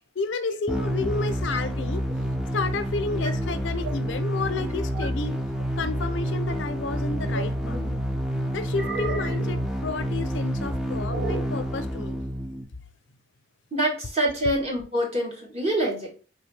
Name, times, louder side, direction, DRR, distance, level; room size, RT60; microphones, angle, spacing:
voice 1, 0.1-2.0 2.5-5.4 5.8-7.8 8.5-12.2, left 3 dB, 85° left, 0.6 m, -31 dB
sound 1, 0.7-12.6, equal, 5° right, 0.5 m, -28 dB
sound 2, 7.6-8.0 8.7-9.6 11.1-11.6, right 3 dB, 75° right, 0.9 m, -34 dB
voice 2, 13.7-16.1, right 1 dB, 35° right, 1.8 m, -26 dB
3.9 x 3.4 x 3.2 m
head